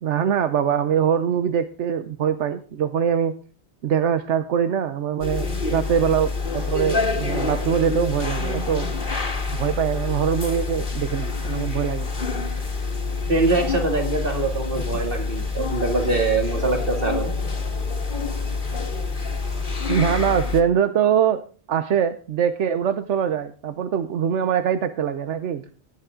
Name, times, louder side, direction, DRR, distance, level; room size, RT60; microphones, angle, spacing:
voice 1, 0.0-3.3 3.8-8.9 9.5-12.1 19.9-21.4 21.7-25.6, right 8 dB, 85° right, 10 dB, 1.1 m, -23 dB
sound 1, 5.2-20.6, left 4 dB, 45° left, 2.0 m, -27 dB
voice 2, 13.3-17.3, right 3 dB, 50° right, 4 dB, 2.6 m, -23 dB
16.5 x 9.6 x 3.7 m, 0.37 s
omnidirectional pair, 1.2 m